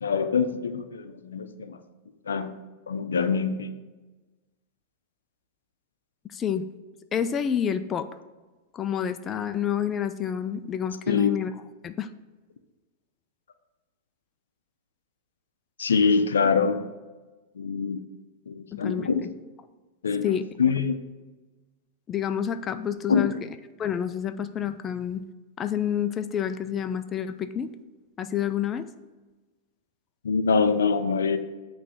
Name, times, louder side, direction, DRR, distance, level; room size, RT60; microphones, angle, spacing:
voice 1, 0.0-1.8 2.3-2.5 2.9-3.7 11.1-11.3 15.8-16.8 17.6-18.0 18.5-19.2 20.0-21.0 23.1-23.3 30.2-31.4, left 5 dB, 90° left, 10 dB, 0.5 m, -24 dB
voice 2, 6.3-6.6 7.1-8.1 8.7-11.5 11.8-12.1 18.7-19.1 20.2-20.4 22.1-23.3 23.8-25.2 25.6-27.7 28.2-28.9, left 9 dB, 25° left, 10 dB, 0.4 m, -28 dB
8.3 x 3.2 x 5.6 m, 1.2 s
hypercardioid pair, 115°, 0 cm